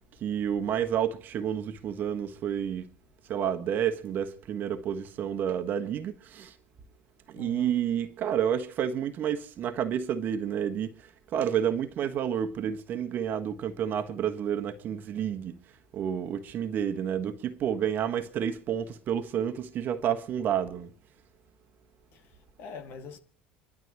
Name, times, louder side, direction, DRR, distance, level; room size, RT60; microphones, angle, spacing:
voice 1, 0.2-2.9 3.3-6.6 7.3-15.6 15.9-20.9, right 9 dB, 45° right, 1.5 m, -30 dB
voice 2, 7.3-7.8 22.1-23.2, left 4 dB, 55° left, 2.1 m, -44 dB
27.0 x 12.5 x 3.1 m
figure-of-eight pair, 70°, 4 cm